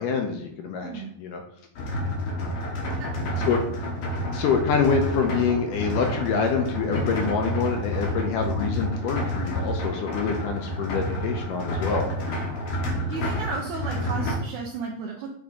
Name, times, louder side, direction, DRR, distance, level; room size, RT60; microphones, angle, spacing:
voice 1, 0.0-1.4 3.5-3.6 4.3-12.1, left 5 dB, 80° left, 4 dB, 2.0 m, -26 dB
sound 1, 1.8-14.4, equal, 65° left, 1.5 m, -29 dB
voice 2, 13.1-15.3, right 4 dB, 80° right, 0 dB, 1.7 m, -33 dB
8.3 x 3.5 x 4.1 m, 0.72 s
omnidirectional pair, 4.2 m